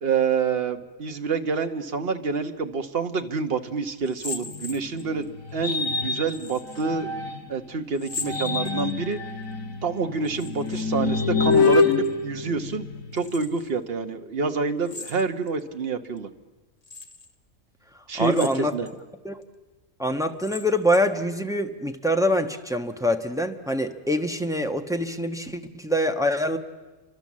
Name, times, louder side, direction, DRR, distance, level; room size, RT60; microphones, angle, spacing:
voice 1, 0.0-5.2 5.5-7.1 7.5-9.2 9.8-12.8 13.1-16.3 18.1-18.9, right 5 dB, 45° right, 7 dB, 1.4 m, -27 dB
sound 1, 4.0-5.3 6.3-6.9 7.9-9.1 10.1-10.9 11.1-12.1 13.1-13.7 14.8-15.6 16.2-16.3 16.8-17.3 18.2-18.9 19.4-19.5 20.2-21.2, left 3 dB, 30° left, 1.2 m, -39 dB
sound 2, 4.4-7.6 8.1-13.3, left 4 dB, 75° left, 1.8 m, -26 dB
voice 2, 18.2-18.7 19.2-19.4 20.0-26.6, equal, 5° right, 6 dB, 1.1 m, -25 dB
29.0 x 24.5 x 7.5 m, 1.2 s
omnidirectional pair, 1.4 m